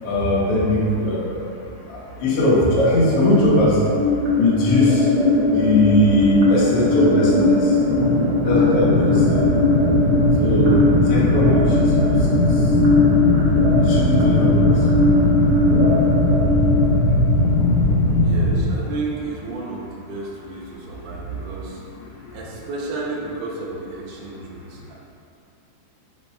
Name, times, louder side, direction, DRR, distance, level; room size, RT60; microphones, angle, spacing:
voice 1, 0.0-1.4 1.9-3.8 4.4-5.1 5.5-7.8 8.4-9.4 10.4-11.8 12.1-12.2 12.5-12.6 13.8-14.8 15.6-15.7, left 1 dB, 65° left, -7 dB, 1.5 m, -20 dB
sound 1, 3.1-18.1, left 2 dB, 65° right, 1.7 m, -20 dB
sound 2, 6.1-18.6, left 1 dB, 85° left, 1.6 m, -20 dB
voice 2, 18.2-21.8 22.3-24.9, right 3 dB, 85° right, -3 dB, 2.3 m, -32 dB
5.4 x 2.2 x 4.2 m, 2.5 s
omnidirectional pair, 3.8 m